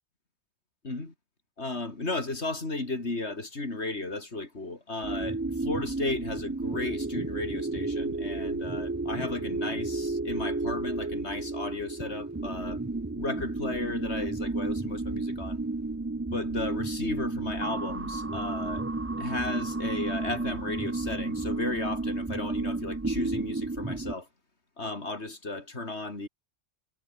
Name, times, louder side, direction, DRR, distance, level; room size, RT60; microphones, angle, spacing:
voice 1, 1.6-12.8 13.1-15.6 16.3-18.9 19.2-24.3 24.8-26.3, left 2 dB, 60° left, 4.2 m, -34 dB
sound 1, 5.0-24.1, right 2 dB, 15° right, 0.5 m, -32 dB
omnidirectional pair, 1.3 m